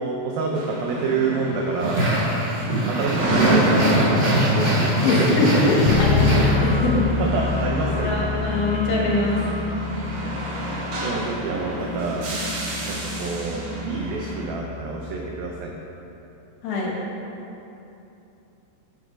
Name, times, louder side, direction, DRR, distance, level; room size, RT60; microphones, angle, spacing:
voice 1, 0.0-2.1 2.9-4.8 5.1-5.5 7.2-8.1 10.2-12.3 12.8-15.7, right 4 dB, 85° right, 0 dB, 2.1 m, -28 dB
sound 1, 0.5-14.4, right 1 dB, 65° right, 1.5 m, -28 dB
sound 2, 1.8-7.0, right 1 dB, 25° right, 1.6 m, -22 dB
voice 2, 5.0-7.0 8.0-9.4 16.6-16.9, left 2 dB, 70° left, -3 dB, 2.8 m, -22 dB
Bass guitar, 5.8-15.6, left 5 dB, 85° left, 2.1 m, -28 dB
8.2 x 8.0 x 5.0 m, 3.0 s
omnidirectional pair, 5.1 m